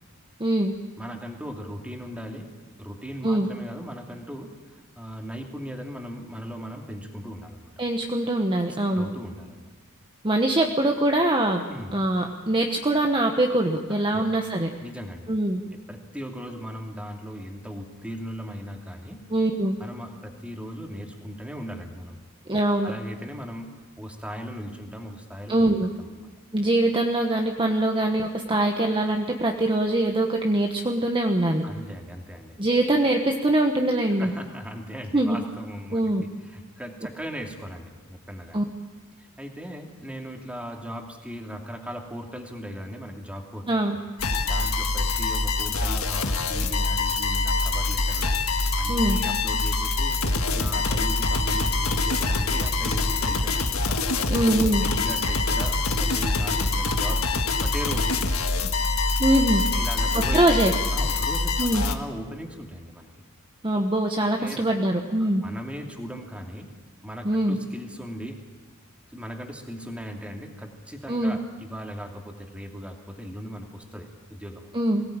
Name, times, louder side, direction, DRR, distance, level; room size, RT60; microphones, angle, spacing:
voice 1, 0.4-0.7 3.2-3.5 7.8-9.1 10.2-11.6 11.9-14.7 15.3-15.6 19.3-19.8 22.5-22.9 25.5-25.9 26.5-31.6 32.6-34.3 35.1-35.4 35.9-36.2 38.5-38.6 43.7-44.0 48.9-49.2 54.3-54.8 59.2-59.6 60.3-60.7 61.6-61.8 63.6-65.4 67.2-67.6 71.1-71.4 74.7-75.0, right 1 dB, 25° right, 3 dB, 1.2 m, -23 dB
voice 2, 1.0-2.5 2.8-7.7 8.5-9.7 11.7-12.0 14.1-14.2 14.8-15.3 15.6-19.2 19.8-22.2 22.8-25.5 25.8-26.3 31.6-32.6 34.2-38.6 39.2-43.7 44.4-48.3 48.8-50.2 50.5-54.0 54.8-58.1 59.7-60.4 60.9-63.1 64.4-64.6 65.2-66.7 67.0-68.4 69.1-74.7, equal, 5° right, 2 dB, 2.6 m, -38 dB
sound 1, 44.2-62.0, left 3 dB, 75° left, 1.6 m, -25 dB
23.0 x 17.5 x 8.9 m, 1.3 s
head